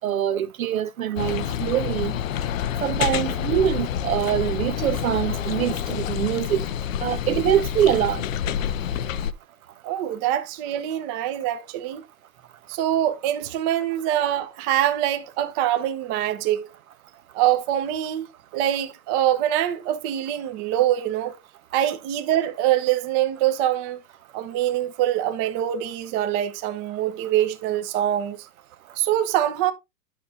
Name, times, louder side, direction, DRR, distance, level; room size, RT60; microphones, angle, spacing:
voice 1, 0.0-2.1 2.8-6.7 7.0-8.3, right 11 dB, 55° right, 0.7 m, -24 dB
sound 1, 1.2-9.3, left 9 dB, 55° left, 0.6 m, -28 dB
voice 2, 9.8-12.0 12.7-16.7 17.3-18.3 18.5-21.4 21.7-24.0 24.3-28.4 29.0-29.7, right 12 dB, 20° right, 0.8 m, -24 dB
11.0 x 6.1 x 2.7 m
hypercardioid pair, 140°, 50 cm